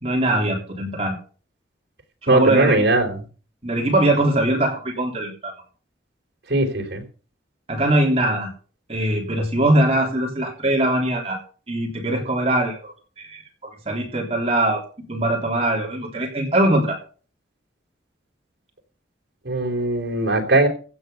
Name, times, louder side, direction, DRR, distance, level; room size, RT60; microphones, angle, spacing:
voice 1, 0.0-1.2 2.2-2.8 3.6-5.5 7.7-8.5 8.9-11.4 11.7-14.8 15.1-17.0, right 1 dB, 30° right, 0 dB, 3.5 m, -21 dB
voice 2, 2.3-3.2 6.5-7.0 19.5-20.7, right 2 dB, 65° right, 1 dB, 3.5 m, -19 dB
15.5 x 7.9 x 5.7 m, 0.39 s
head